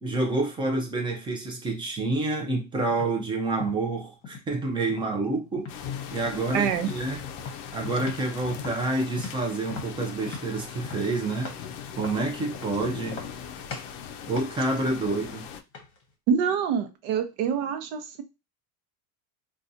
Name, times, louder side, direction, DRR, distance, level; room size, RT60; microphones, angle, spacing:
voice 1, 0.0-5.7 6.1-7.2 7.7-11.5 12.0-13.2 14.3-15.4, right 2 dB, 10° right, 0.4 m, -28 dB
sound 1, 2.9-3.2 3.6-4.5 4.9-5.8 6.2-6.5 6.8-7.0 7.4-8.3 8.6-11.7 12.0-12.8 13.1-13.4 13.7-14.0 14.4-16.0, left 4 dB, 30° left, 0.9 m, -40 dB
sound 2, 5.7-15.6, left 8 dB, 55° left, 0.5 m, -39 dB
voice 2, 6.5-6.9 16.3-18.2, right 7 dB, 65° right, 0.8 m, -26 dB
4.0 x 2.4 x 2.6 m
cardioid pair, 155°, 49 cm